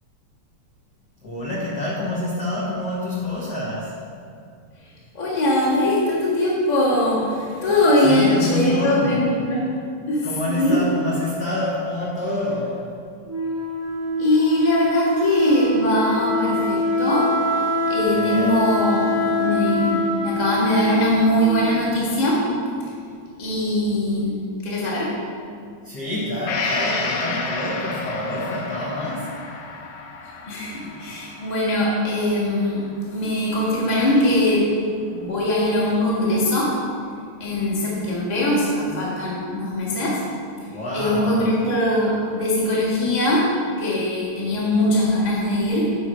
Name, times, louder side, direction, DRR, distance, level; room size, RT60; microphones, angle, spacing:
voice 1, 1.2-4.0 8.0-9.3 10.2-12.8 18.1-18.6 25.8-29.3 40.7-41.5, left 1 dB, 60° left, -6 dB, 1.1 m, -27 dB
voice 2, 5.1-9.8 10.1-10.8 14.2-22.5 23.4-25.2 30.5-34.7 35.1-36.8 37.4-40.2 40.9-46.0, left 1 dB, 25° left, -5 dB, 1.0 m, -21 dB
Wind instrument woodwind instrument, 13.3-22.0, left 1 dB, 15° right, 0.6 m, -24 dB
Gong, 26.5-34.1 34.5-34.6, left 4 dB, 85° left, 2.3 m, -32 dB
8.9 x 4.5 x 6.2 m, 2.3 s
omnidirectional pair, 3.6 m